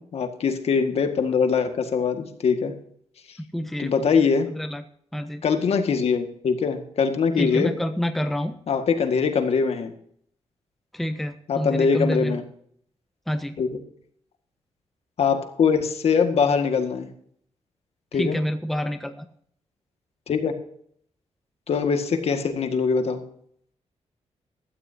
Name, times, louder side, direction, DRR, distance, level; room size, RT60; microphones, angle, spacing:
voice 1, 0.0-2.7 3.8-4.5 5.4-7.7 8.7-9.9 11.5-12.4 13.6-13.7 15.2-17.1 18.1-18.4 20.3-20.5 21.7-23.2, left 5 dB, 60° left, 7 dB, 1.9 m, -22 dB
voice 2, 3.5-3.9 4.5-4.8 5.1-5.4 7.4-8.6 10.9-12.4 13.3-13.6 18.1-19.2, equal, ahead, 9 dB, 0.7 m, -27 dB
16.0 x 13.5 x 2.8 m, 0.65 s
wide cardioid pair, 155°, 12 cm